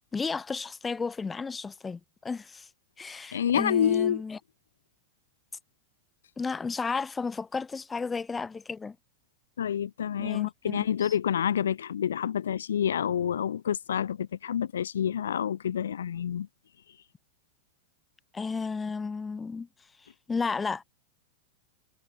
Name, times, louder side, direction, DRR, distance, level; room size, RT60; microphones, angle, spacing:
voice 1, 0.1-2.7 3.0-4.4 6.4-9.0 10.2-11.2 18.3-19.7 20.0-20.8, left 4 dB, 15° left, 1.2 m, -33 dB
voice 2, 3.3-4.2 9.6-16.5, left 9 dB, 80° left, 1.9 m, -28 dB
hypercardioid pair, 100°, 0 cm